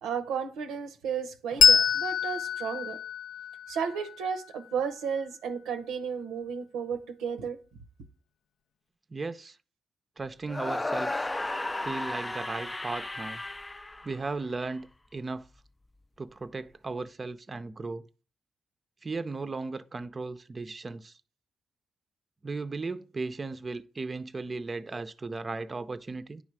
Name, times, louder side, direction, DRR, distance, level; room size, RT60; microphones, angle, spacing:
voice 1, 0.0-3.0 3.7-7.6, right 6 dB, 90° right, 0.6 m, -33 dB
Bell, 1.6-4.7, left 7 dB, 80° left, 0.4 m, -25 dB
voice 2, 9.1-9.6 10.2-11.3 11.8-13.4 14.0-15.5 16.2-18.1 19.0-21.2 22.4-26.4, right 3 dB, 35° right, 0.5 m, -36 dB
sound 1, 10.5-14.7, left 2 dB, 20° left, 0.4 m, -34 dB
9.4 x 3.2 x 6.0 m
supercardioid pair, 55°, 0 cm